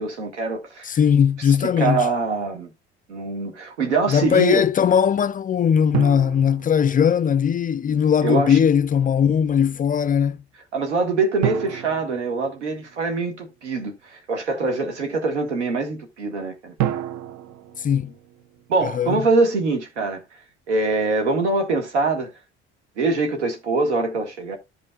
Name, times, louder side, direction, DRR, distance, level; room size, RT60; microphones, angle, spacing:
voice 1, 0.0-0.9 1.4-2.7 3.1-4.6 8.2-8.6 10.7-16.7 18.7-20.2 20.7-22.3 23.0-24.6, right 3 dB, 85° right, 1.5 m, -23 dB
voice 2, 0.8-2.1 4.1-10.4 17.8-18.1 18.8-19.2, left 8 dB, 25° left, 0.3 m, -19 dB
sound 1, 5.9-7.6 11.4-13.3 16.8-19.1, right 11 dB, 55° right, 0.6 m, -31 dB
14.0 x 5.5 x 2.2 m
hypercardioid pair, 55°, 34 cm